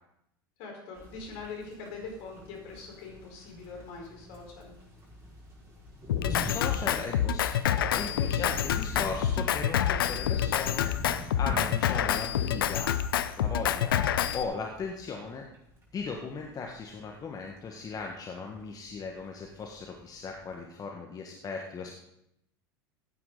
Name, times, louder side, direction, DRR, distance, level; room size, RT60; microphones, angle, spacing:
voice 1, 0.6-4.7 8.4-8.7, left 4 dB, 60° left, 1 dB, 4.7 m, -43 dB
sound 1, 1.0-20.6, left 1 dB, 20° right, 5.5 m, -45 dB
Drum kit, 6.1-14.4, left 10 dB, 75° left, 0.7 m, -27 dB
voice 2, 6.3-12.9 13.4-14.0 14.3-15.5 15.9-21.9, left 4 dB, 30° left, 1 dB, 1.6 m, -38 dB
15.0 x 9.4 x 4.1 m, 0.78 s
hypercardioid pair, 80°, 12 cm